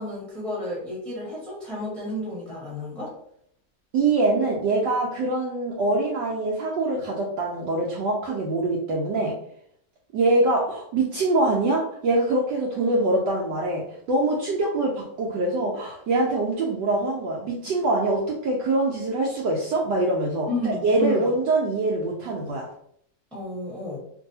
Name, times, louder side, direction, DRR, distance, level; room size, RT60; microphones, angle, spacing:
voice 1, 0.0-3.1 20.5-21.3 23.3-24.0, equal, ahead, -7 dB, 0.9 m, -31 dB
voice 2, 3.9-9.3 10.1-13.8 14.1-22.7, right 2 dB, 75° right, -3 dB, 1.1 m, -24 dB
3.0 x 2.6 x 2.7 m, 0.68 s
omnidirectional pair, 2.3 m